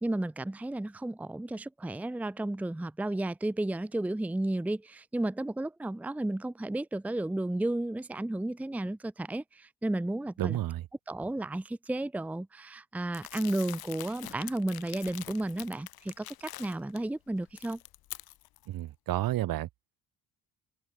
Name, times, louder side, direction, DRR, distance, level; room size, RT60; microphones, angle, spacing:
voice 1, 0.0-10.6 11.1-17.8, right 1 dB, 5° right, 0.7 m, -33 dB
voice 2, 10.4-10.8 18.7-19.7, right 14 dB, 70° right, 3.4 m, -31 dB
Crumpling crinkling, 13.1-17.0 17.4-18.7, left 15 dB, 80° left, 4.1 m, -45 dB
open air
cardioid pair, 150°, 36 cm